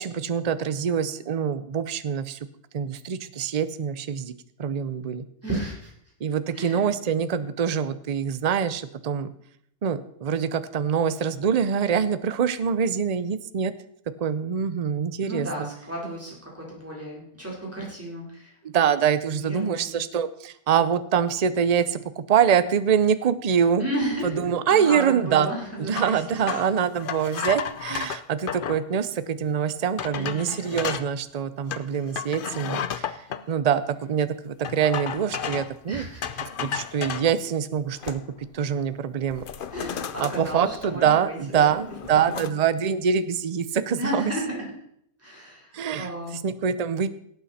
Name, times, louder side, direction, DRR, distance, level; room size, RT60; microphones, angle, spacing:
voice 1, 0.0-2.4 2.7-4.3 4.6-5.2 6.2-9.3 9.8-13.7 14.2-15.7 18.6-23.9 24.2-25.5 25.8-33.2 33.5-36.0 36.6-38.2 38.5-39.4 40.2-44.3 45.7-46.1 46.4-47.1, right 7 dB, 50° right, 13 dB, 0.4 m, -24 dB
voice 2, 5.4-5.9 6.5-6.8 15.2-18.6 19.3-20.0 23.8-24.4 24.7-26.5 27.3-27.5 30.1-30.5 35.9-36.2 39.7-41.8 42.3-42.5 44.0-44.7 45.2-46.4, right 1 dB, 10° right, -3 dB, 4.1 m, -33 dB
sound 1, 25.9-28.8 29.4-29.5 30.0-31.1 31.7-33.4 34.6-35.8 36.2-37.3 37.8-38.5 38.8-39.0 39.3-41.2 41.5-42.5, left 8 dB, 55° left, 0.6 m, -33 dB
18.0 x 8.5 x 4.2 m, 0.69 s
omnidirectional pair, 1.6 m